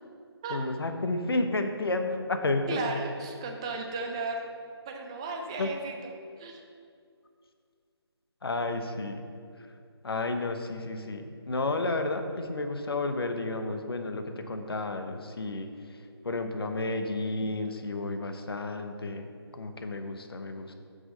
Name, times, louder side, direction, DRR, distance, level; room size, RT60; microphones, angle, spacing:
voice 1, 0.5-2.8 5.6-5.7 8.4-9.2 10.0-16.0 16.2-19.3 19.6-20.7, left 2 dB, 65° left, 6 dB, 0.9 m, -31 dB
voice 2, 2.7-4.5 4.9-6.1 6.4-6.6, right 3 dB, 10° right, 3 dB, 0.4 m, -35 dB
8.0 x 6.2 x 5.6 m, 2.3 s
figure-of-eight pair, 155°, 14 cm